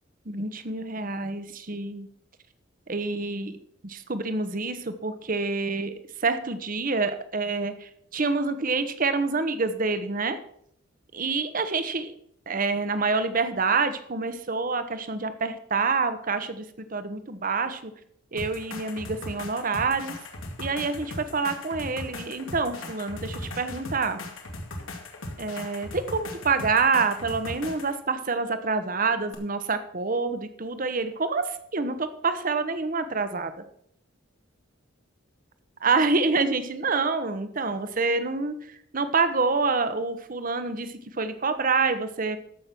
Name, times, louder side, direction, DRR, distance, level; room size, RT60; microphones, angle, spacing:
voice 1, 0.3-2.1 2.9-3.6 3.8-5.9 6.2-10.4 11.1-12.1 12.5-16.6 16.9-17.9 18.3-20.2 20.6-24.2 25.4-33.5 35.8-38.5 38.9-42.4, right 4 dB, 40° right, 10 dB, 0.9 m, -27 dB
sound 1, 18.4-28.0 29.3-29.4, left 1 dB, 90° left, 2.2 m, -38 dB
13.5 x 6.1 x 6.0 m, 0.69 s
head